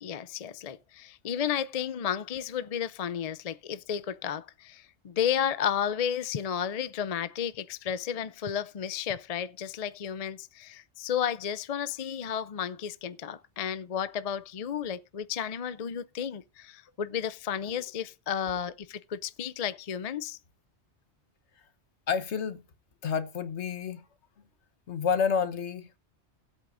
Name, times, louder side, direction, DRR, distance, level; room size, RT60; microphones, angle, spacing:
voice 1, 0.0-20.4, left 8 dB, 45° left, 0.5 m, -32 dB
voice 2, 22.1-22.6 23.0-24.0 24.9-26.0, left 6 dB, 80° left, 1.4 m, -29 dB
17.0 x 8.3 x 2.6 m
omnidirectional pair, 1.1 m